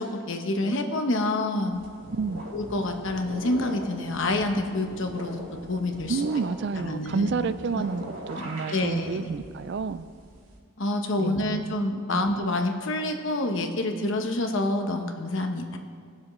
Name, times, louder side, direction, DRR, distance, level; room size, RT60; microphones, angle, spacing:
voice 1, 0.0-1.8 2.5-5.4 5.7-6.2 6.8-7.8 8.4-9.3 10.8-15.8, left 2 dB, 60° left, 5 dB, 1.0 m, -28 dB
sound 1, 1.7-10.6, equal, 75° right, 2.1 m, -41 dB
voice 2, 2.1-2.4 6.1-10.1 11.2-11.8 12.1-12.2, right 5 dB, 50° right, 13 dB, 0.3 m, -30 dB
20.0 x 7.3 x 3.2 m, 2.1 s
head